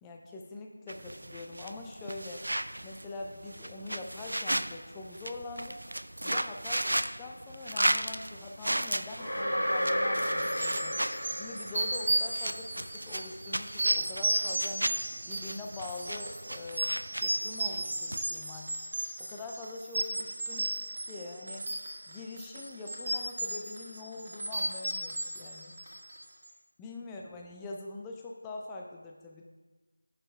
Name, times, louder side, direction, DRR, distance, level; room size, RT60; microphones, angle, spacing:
voice 1, 0.0-2.5 2.8-5.8 6.2-15.0 15.3-18.7 19.2-20.7 21.0-21.7 22.1-25.8 26.8-29.4, left 2 dB, 5° left, 0 dB, 0.4 m, -43 dB
sound 1, 0.9-18.3, right 1 dB, 65° right, 0.4 m, -36 dB
sound 2, 9.2-12.3, equal, 25° left, 2.2 m, -32 dB
sound 3, 10.4-26.2, right 1 dB, 35° right, 1.2 m, -34 dB
8.9 x 6.4 x 3.3 m, 1.3 s
figure-of-eight pair, 170°, 0 cm